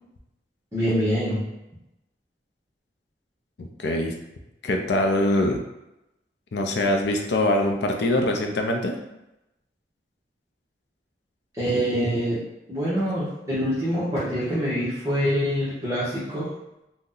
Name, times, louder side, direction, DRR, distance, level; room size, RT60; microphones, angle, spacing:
voice 1, 0.7-1.4 11.6-12.4 12.7-16.5, equal, 20° right, -12 dB, 0.8 m, -25 dB
voice 2, 3.6-4.1 4.6-5.6 6.5-9.0, left 1 dB, 70° left, 3 dB, 0.4 m, -23 dB
2.7 x 2.1 x 3.7 m, 0.91 s
head